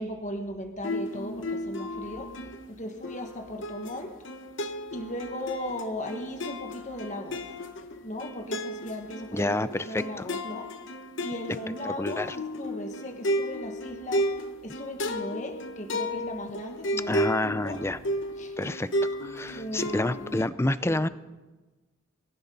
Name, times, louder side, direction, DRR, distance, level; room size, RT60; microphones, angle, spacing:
voice 1, 0.0-4.2 4.9-7.5 8.0-9.6 9.8-10.7 11.2-14.3 14.6-17.8 18.4-18.6 19.5-20.4 20.8-21.0, left 1 dB, 35° left, 4 dB, 1.6 m, -37 dB
sound 1, 0.8-20.5, equal, 65° left, 1.0 m, -34 dB
voice 2, 9.3-10.3 11.8-12.4 17.1-18.0 18.6-18.9 19.2-21.1, left 1 dB, 10° left, 15 dB, 0.4 m, -28 dB
23.5 x 15.0 x 4.0 m, 1.2 s
head